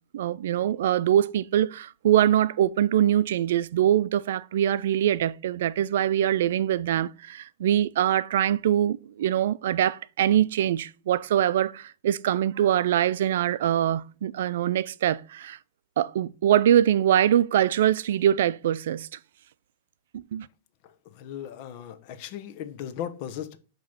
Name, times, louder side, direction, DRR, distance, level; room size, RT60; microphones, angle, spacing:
voice 1, 0.1-15.6 16.0-19.1 20.3-20.5, right 11 dB, 75° right, 0.4 m, -23 dB
voice 2, 21.2-23.6, left 10 dB, 55° left, 0.9 m, -37 dB
7.6 x 3.0 x 5.6 m
hypercardioid pair, 125°, 0 cm